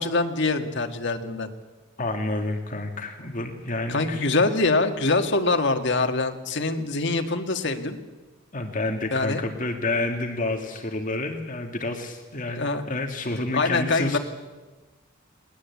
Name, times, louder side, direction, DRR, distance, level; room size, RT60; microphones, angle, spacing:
voice 1, 0.0-1.5 3.9-8.0 9.1-9.4 12.6-12.8 13.5-14.2, left 3 dB, 60° left, 6 dB, 1.9 m, -24 dB
voice 2, 2.0-4.2 8.5-14.2, left 2 dB, 40° left, 4 dB, 2.2 m, -29 dB
21.5 x 20.0 x 8.5 m, 1.2 s
head